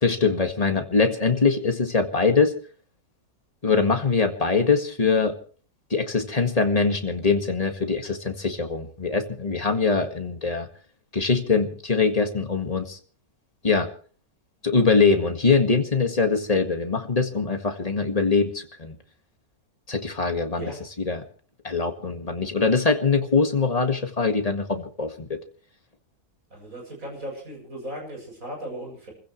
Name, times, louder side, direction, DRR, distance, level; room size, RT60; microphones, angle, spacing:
voice 1, 0.0-2.5 3.6-5.4 5.9-10.7 11.1-13.0 13.6-13.9 14.6-19.0 19.9-20.7 21.1-21.2 21.6-25.4, left 4 dB, 25° left, 5 dB, 1.8 m, -23 dB
voice 2, 26.5-29.1, right 1 dB, 55° right, 0 dB, 8.2 m, -37 dB
28.5 x 15.5 x 3.2 m, 0.42 s
omnidirectional pair, 1.7 m